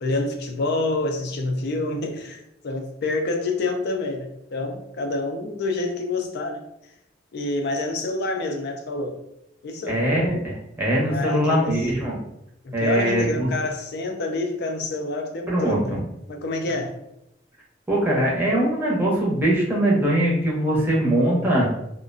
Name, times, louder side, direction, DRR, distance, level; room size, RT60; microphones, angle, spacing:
voice 1, 0.0-6.6 7.3-9.2 9.6-10.0 11.0-11.9 12.6-16.0 16.3-16.9 20.8-20.9, left 2 dB, 60° left, 4 dB, 0.4 m, -27 dB
voice 2, 9.9-12.2 12.7-13.5 15.5-16.0 17.9-21.7, right 1 dB, 10° right, -5 dB, 0.6 m, -22 dB
2.3 x 2.2 x 2.5 m, 0.80 s
head